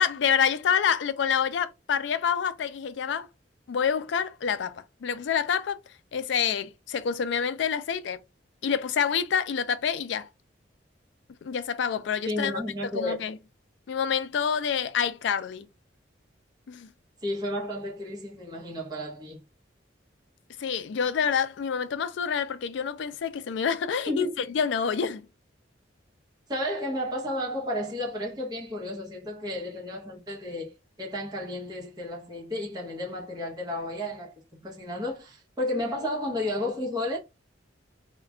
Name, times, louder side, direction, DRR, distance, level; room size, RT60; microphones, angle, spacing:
voice 1, 0.0-3.3 3.7-5.8 6.1-8.2 8.6-10.3 11.4-12.6 12.9-13.4 13.9-15.7 16.7-16.9 20.6-25.3, left 7 dB, 70° left, 0.3 m, -27 dB
voice 2, 12.3-13.2 17.2-19.4 24.1-24.3 26.5-34.3 34.6-37.2, left 1 dB, 20° right, 0.8 m, -32 dB
2.4 x 2.2 x 3.5 m
head